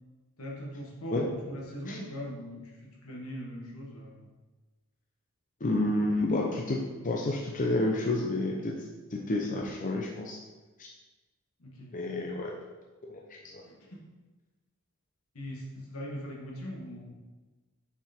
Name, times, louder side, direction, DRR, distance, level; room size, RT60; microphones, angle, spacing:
voice 1, 0.4-4.3 11.6-11.9 13.6-14.0 15.3-17.1, equal, 75° left, -2 dB, 1.5 m, -40 dB
voice 2, 5.6-8.8 9.1-10.4 10.8-10.9 11.9-12.5 13.0-13.6, left 2 dB, 40° left, -1 dB, 0.7 m, -30 dB
6.7 x 4.8 x 4.3 m, 1.2 s
head